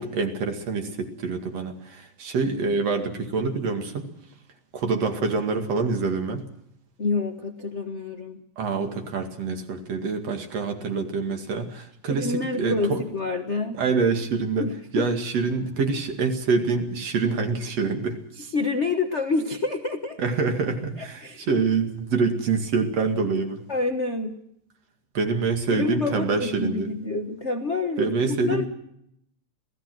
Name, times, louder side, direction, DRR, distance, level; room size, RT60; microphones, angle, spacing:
voice 1, 0.0-4.0 4.7-6.4 8.6-13.0 13.7-14.7 14.9-18.2 20.2-23.6 25.1-26.9 28.0-28.7, right 4 dB, 60° right, 5 dB, 3.2 m, -26 dB
voice 2, 7.0-8.4 12.1-13.8 14.6-15.1 18.4-20.2 21.0-21.5 23.7-24.3 25.7-28.7, left 3 dB, 50° left, 5 dB, 0.8 m, -28 dB
27.0 x 17.0 x 6.2 m, 0.78 s
omnidirectional pair, 3.4 m